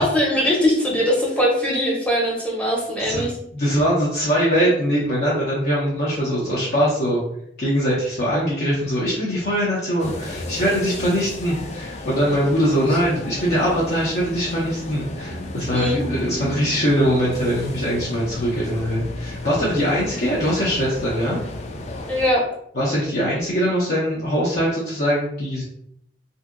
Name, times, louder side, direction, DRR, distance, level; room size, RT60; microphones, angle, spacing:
voice 1, 0.0-3.4 15.7-16.0 22.1-22.4, equal, 5° left, -3 dB, 0.8 m, -21 dB
voice 2, 3.5-7.2 7.6-21.4 22.7-25.6, equal, 60° left, -7 dB, 0.7 m, -22 dB
sound 1, 10.0-22.3, left 1 dB, 40° left, 0.3 m, -33 dB
2.7 x 2.6 x 2.4 m, 0.72 s
head